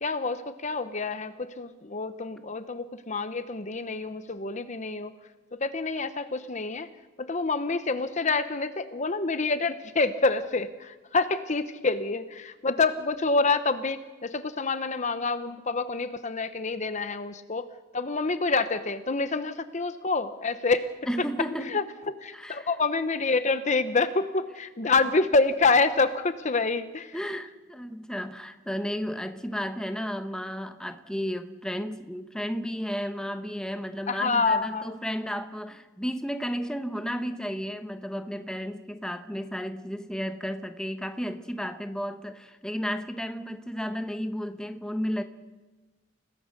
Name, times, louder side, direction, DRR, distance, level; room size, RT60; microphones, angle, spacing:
voice 1, 0.0-5.1 5.5-6.9 7.2-17.7 17.9-20.9 21.2-21.3 21.7-27.1 34.1-35.0, left 3 dB, 35° left, 11 dB, 0.8 m, -27 dB
voice 2, 21.1-21.8 22.3-22.7 27.1-45.2, equal, 5° left, 7 dB, 1.0 m, -33 dB
30.0 x 18.0 x 6.6 m, 1.2 s
head